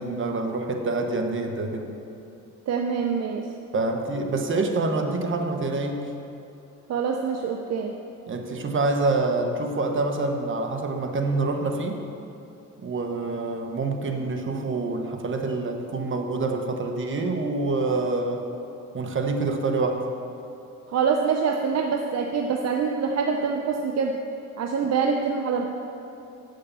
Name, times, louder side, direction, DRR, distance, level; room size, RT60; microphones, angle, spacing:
voice 1, 0.0-1.9 3.7-6.1 8.3-12.0 12.8-18.4 18.9-20.0, right 3 dB, 40° right, 4 dB, 1.1 m, -26 dB
voice 2, 2.7-3.5 6.9-7.9 20.9-24.2 24.6-25.7, right 5 dB, 60° right, 3 dB, 0.7 m, -25 dB
8.5 x 6.5 x 6.8 m, 2.8 s
cardioid pair, 90°, 30 cm